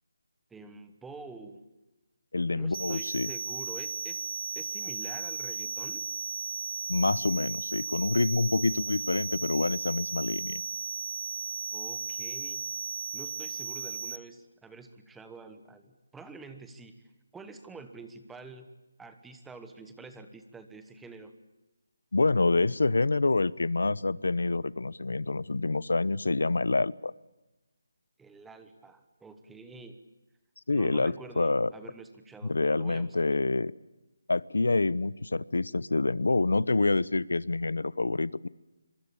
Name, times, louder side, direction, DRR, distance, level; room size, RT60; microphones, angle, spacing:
voice 1, 0.5-1.7 2.5-4.3 4.6-6.1 11.7-12.7 13.1-17.0 17.3-18.7 19.0-21.4 28.2-30.0 30.7-33.4, right 3 dB, 5° right, 9 dB, 1.1 m, -47 dB
voice 2, 2.3-3.3 6.9-10.6 22.1-27.1 30.7-31.7 32.4-33.7 34.3-38.5, left 3 dB, 85° left, 21 dB, 0.9 m, -27 dB
sound 1, 2.7-14.2, right 5 dB, 40° right, 0.9 m, -35 dB
25.0 x 23.5 x 8.5 m, 1.0 s
hypercardioid pair, 175°, 0 cm